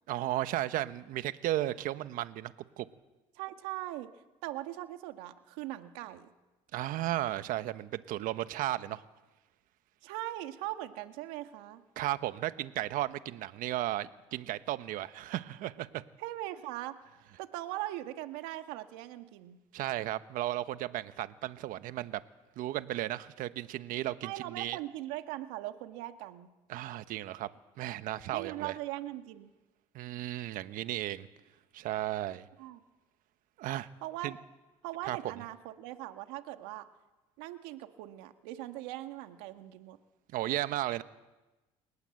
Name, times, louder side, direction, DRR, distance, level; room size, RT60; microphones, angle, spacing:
voice 1, 0.1-2.9 6.7-9.0 12.0-16.0 19.7-22.2 22.6-24.8 26.7-27.5 27.8-28.7 29.9-31.3 31.7-32.5 33.6-33.9 34.2-34.4 35.0-35.2 40.3-41.0, right 14 dB, 70° right, 12 dB, 1.3 m, -34 dB
voice 2, 3.3-4.1 4.4-6.3 10.0-11.8 16.2-17.0 17.4-19.6 24.2-26.5 28.3-29.5 32.6-32.8 34.0-34.3 34.8-36.8 37.4-40.0, right 15 dB, 85° right, 8 dB, 1.7 m, -40 dB
29.0 x 18.5 x 7.9 m, 1.1 s
supercardioid pair, 90°, 15 cm